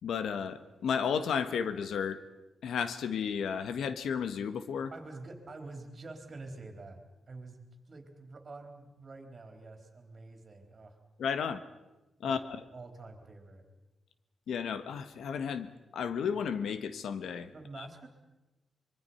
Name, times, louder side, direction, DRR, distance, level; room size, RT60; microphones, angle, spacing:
voice 1, 0.0-2.2 2.6-4.9 11.2-11.6 12.2-12.4 14.5-17.9, left 7 dB, 85° left, 12 dB, 1.3 m, -33 dB
voice 2, 4.9-11.0 12.2-12.4 12.7-13.7 17.5-18.1, right 3 dB, 35° right, 5 dB, 3.8 m, -47 dB
24.5 x 23.0 x 5.7 m, 1.1 s
cardioid pair, 115°, 0 cm